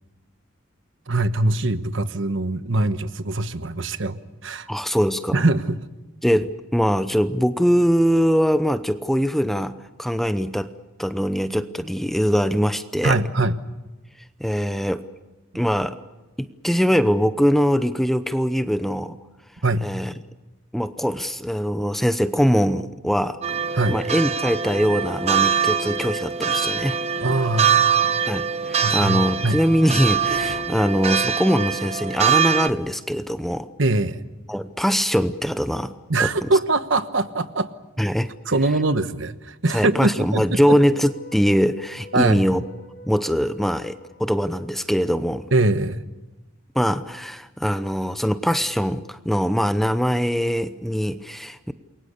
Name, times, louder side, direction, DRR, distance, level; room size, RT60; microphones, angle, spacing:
voice 1, 1.1-4.7 5.3-5.8 13.0-13.6 19.6-19.9 23.7-24.0 27.2-28.2 28.8-29.6 33.8-34.2 36.1-37.7 38.5-40.6 42.1-42.5 45.5-46.0, right 2 dB, 65° right, 11 dB, 1.2 m, -22 dB
voice 2, 4.7-5.4 6.2-10.7 11.0-13.2 14.4-15.0 15.5-16.0 16.4-19.2 19.8-20.1 20.7-23.4 23.9-27.0 28.2-33.7 34.5-35.9 36.2-36.5 38.0-38.3 39.7-42.6 43.1-45.5 46.7-51.7, equal, ahead, 11 dB, 0.8 m, -22 dB
sound 1, 23.4-32.7, right 7 dB, 30° right, 0.8 m, -23 dB
sound 2, 26.3-32.4 32.7-32.9 33.1-33.2 34.5-36.8, right 2 dB, 45° right, 2.9 m, -47 dB
sound 3, 40.7-45.9, left 1 dB, 55° left, 7.9 m, -46 dB
28.5 x 23.0 x 6.7 m, 1.1 s
head